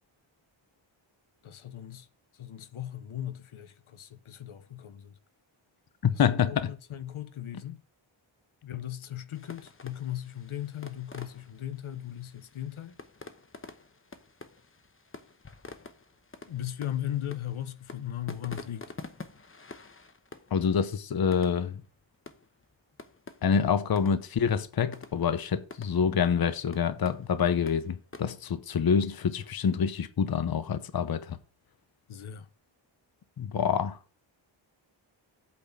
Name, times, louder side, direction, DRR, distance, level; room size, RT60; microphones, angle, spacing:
voice 1, 1.4-2.1 2.3-5.1 6.1-7.8 8.6-12.9 16.5-18.9 32.1-32.5, left 11 dB, 85° left, 1.0 m, -37 dB
voice 2, 6.0-6.7 20.5-21.8 23.4-31.4 33.4-34.0, left 7 dB, 50° left, 0.8 m, -27 dB
sound 1, 9.3-28.4, left 4 dB, 25° left, 1.0 m, -48 dB
8.5 x 4.2 x 7.2 m
wide cardioid pair, 135°, 48 cm